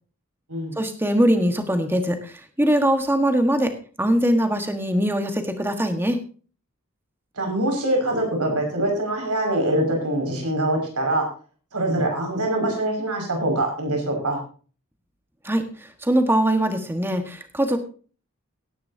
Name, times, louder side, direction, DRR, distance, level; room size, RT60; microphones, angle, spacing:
voice 1, 0.8-3.7 4.0-6.2 15.4-15.7 16.0-17.8, right 1 dB, 10° right, 6 dB, 1.5 m, -21 dB
voice 2, 7.4-11.2 11.7-14.4, right 1 dB, 90° right, 2 dB, 5.9 m, -24 dB
17.5 x 11.0 x 2.8 m, 0.38 s
head